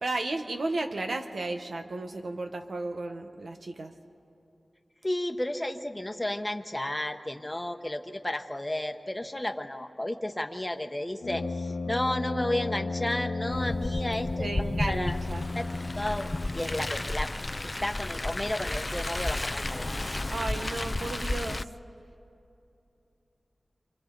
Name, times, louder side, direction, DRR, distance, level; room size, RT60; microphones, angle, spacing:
voice 1, 0.0-3.9 14.4-15.4 20.2-21.6, right 2 dB, 80° right, 5 dB, 1.3 m, -34 dB
voice 2, 5.0-14.5 14.9-15.2 15.5-15.7 16.0-17.3 17.6-19.9, left 1 dB, 20° left, 6 dB, 1.1 m, -32 dB
Brass instrument, 11.2-17.1, left 3 dB, 85° left, 1.0 m, -34 dB
Car, 13.5-21.6, left 2 dB, 35° left, 0.5 m, -33 dB
28.5 x 25.0 x 4.0 m, 2.8 s
wide cardioid pair, 50°, 0 cm